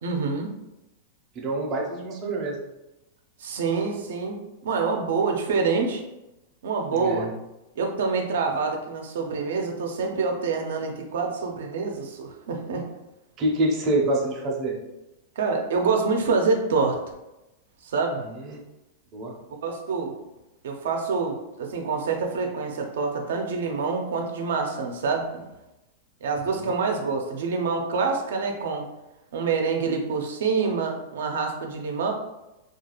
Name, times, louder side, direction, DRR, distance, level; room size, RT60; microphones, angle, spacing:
voice 1, 0.0-0.5 3.4-6.0 6.6-7.3 7.8-12.9 15.4-17.0 17.8-18.2 19.6-20.1 20.6-25.5 26.2-28.9 29.3-32.1, right 4 dB, 85° right, 2 dB, 0.4 m, -26 dB
voice 2, 1.3-2.6 6.9-7.3 13.4-14.8 18.4-18.6 19.1-19.3 26.7-26.8, right 1 dB, 25° right, -2 dB, 0.5 m, -26 dB
2.3 x 2.3 x 2.9 m, 0.95 s
supercardioid pair, 160°, 0 cm